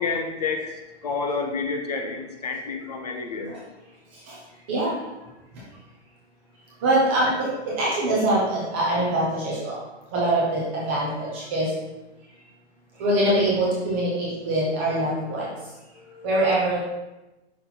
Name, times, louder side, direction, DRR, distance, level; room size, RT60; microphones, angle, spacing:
voice 1, 0.0-3.5 16.0-16.3, left 4 dB, 35° left, 3 dB, 0.6 m, -29 dB
voice 2, 6.8-9.8 10.1-11.7 12.9-15.5 16.2-16.8, right 1 dB, 10° right, -7 dB, 0.5 m, -23 dB
5.8 x 4.1 x 4.1 m, 1.0 s
hypercardioid pair, 170°, 34 cm